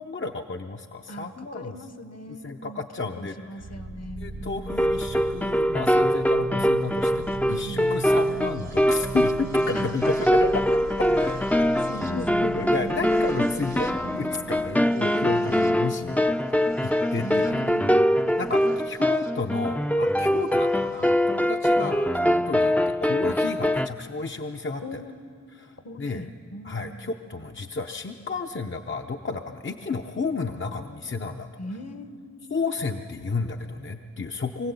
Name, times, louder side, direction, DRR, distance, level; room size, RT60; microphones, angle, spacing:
voice 1, 0.0-1.7 2.4-3.3 4.2-10.5 12.1-16.2 16.8-17.6 18.4-25.0 25.6-26.2 26.6-31.5 32.5-34.7, left 4 dB, 40° left, 4 dB, 0.7 m, -32 dB
voice 2, 1.1-2.8 3.2-4.9 7.4-7.9 9.7-10.1 11.2-11.5 11.8-14.1 15.0-15.4 17.2-18.0 18.5-18.6 24.8-25.1 25.8-27.1 31.6-32.8, equal, 60° left, 10 dB, 1.2 m, -40 dB
sound 1, 3.6-19.3 20.5-21.1, right 3 dB, 75° right, 1.7 m, -40 dB
sound 2, 4.7-23.9, equal, 5° left, 0.5 m, -23 dB
23.5 x 16.0 x 8.3 m, 2.3 s
wide cardioid pair, 60°, 29 cm